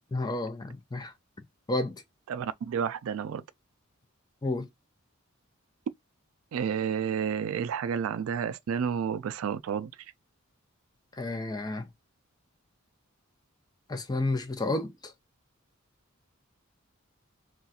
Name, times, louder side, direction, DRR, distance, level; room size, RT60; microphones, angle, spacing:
voice 1, 0.1-1.1 1.7-2.0 4.4-4.7 11.2-11.9 13.9-15.1, left 2 dB, 20° left, 0.4 m, -31 dB
voice 2, 2.3-3.4 6.5-9.9, right 7 dB, 75° right, 0.3 m, -30 dB
2.5 x 2.3 x 4.0 m
head